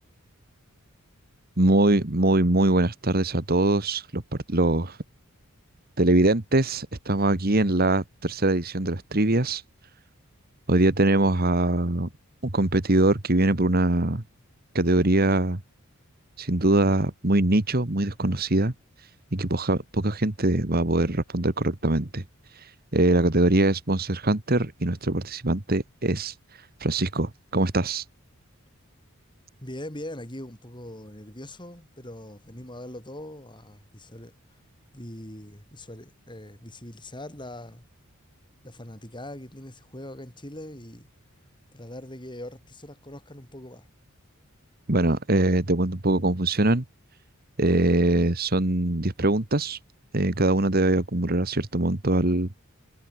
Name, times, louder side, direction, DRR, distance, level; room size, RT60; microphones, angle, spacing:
voice 1, 1.6-4.2 4.5-5.0 6.0-9.6 10.7-12.1 12.4-14.2 14.7-15.6 16.4-18.7 19.0-22.2 22.5-28.0 44.9-46.8 47.6-49.8 50.1-52.5, right 2 dB, 45° right, 1.7 m, -23 dB
voice 2, 29.6-34.3 34.9-37.9 38.6-41.1 41.7-43.9, left 1 dB, 20° left, 6.4 m, -41 dB
head